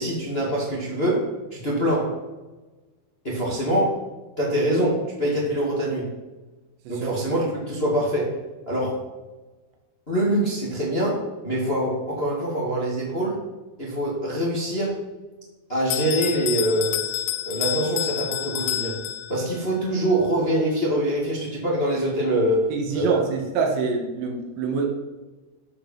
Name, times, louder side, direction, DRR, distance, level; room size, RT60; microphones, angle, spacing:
voice 1, 0.0-2.2 3.2-3.9 4.4-6.1 6.9-8.4 8.7-9.0 10.1-13.4 13.8-15.0 15.7-17.0 17.4-19.0 19.3-23.2, right 1 dB, 30° left, -4 dB, 1.1 m, -24 dB
Bell, 15.9-19.6, left 12 dB, 85° left, 2.7 m, -28 dB
voice 2, 22.7-24.9, right 5 dB, 85° right, 0 dB, 3.8 m, -25 dB
13.0 x 5.2 x 6.0 m, 1.2 s
omnidirectional pair, 4.9 m